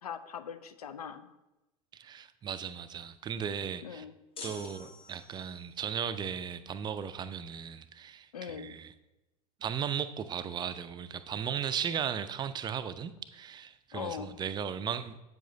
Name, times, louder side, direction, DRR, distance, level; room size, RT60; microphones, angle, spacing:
voice 1, 0.0-1.3 3.8-4.1 8.3-8.7 13.9-14.3, left 7 dB, 80° left, 11 dB, 0.5 m, -41 dB
voice 2, 1.9-4.0 4.4-8.9 9.6-15.2, right 8 dB, 25° right, 11 dB, 0.3 m, -36 dB
sound 1, 4.4-5.7, left 4 dB, 30° left, 0.9 m, -46 dB
7.7 x 7.4 x 2.7 m, 0.99 s
figure-of-eight pair, 80°, 19 cm